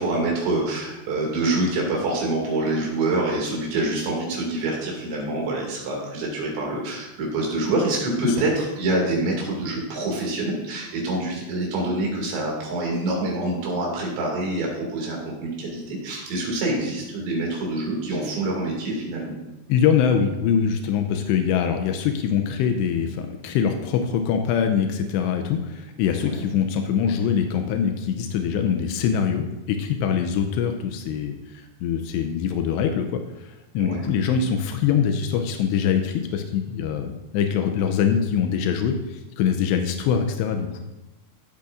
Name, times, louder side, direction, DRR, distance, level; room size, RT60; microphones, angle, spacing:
voice 1, 0.0-19.4 26.2-26.4 33.8-34.1, right 2 dB, 85° right, -2 dB, 4.8 m, -26 dB
voice 2, 19.7-40.8, left 7 dB, 90° left, 5 dB, 2.8 m, -23 dB
15.0 x 8.4 x 2.6 m, 1.0 s
omnidirectional pair, 5.0 m